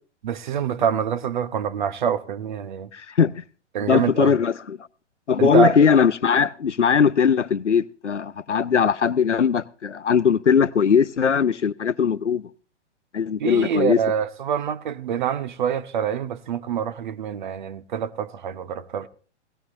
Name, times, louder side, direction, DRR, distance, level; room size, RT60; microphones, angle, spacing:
voice 1, 0.2-2.9 3.7-4.4 5.4-5.7 13.4-19.1, right 8 dB, 40° right, 0.7 m, -25 dB
voice 2, 2.9-3.3 3.8-4.8 5.3-12.4 13.1-14.0, left 7 dB, 80° left, 0.6 m, -20 dB
17.0 x 16.5 x 2.6 m
figure-of-eight pair, 115°, 35 cm